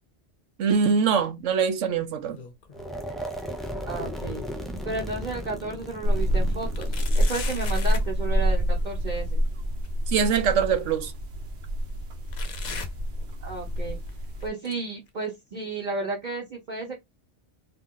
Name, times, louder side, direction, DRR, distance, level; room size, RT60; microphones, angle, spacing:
voice 1, 0.6-2.4 10.1-11.1, right 6 dB, 90° right, 1.1 m, -23 dB
sound 1, 2.0-2.9 3.3-5.2 5.7-5.8 6.7-8.1 9.8-9.9 10.9-11.0 12.3-13.7 14.1-14.4 15.1-15.2 16.1-16.2, left 5 dB, 45° left, 0.6 m, -40 dB
sound 2, 2.7-8.7, equal, ahead, 0.4 m, -36 dB
voice 2, 3.9-4.4 4.8-9.4 13.4-14.0 14.4-17.0, right 3 dB, 40° right, 1.0 m, -33 dB
sound 3, 6.0-14.5, equal, 65° right, 1.1 m, -27 dB
2.9 x 2.8 x 3.7 m
omnidirectional pair, 1.2 m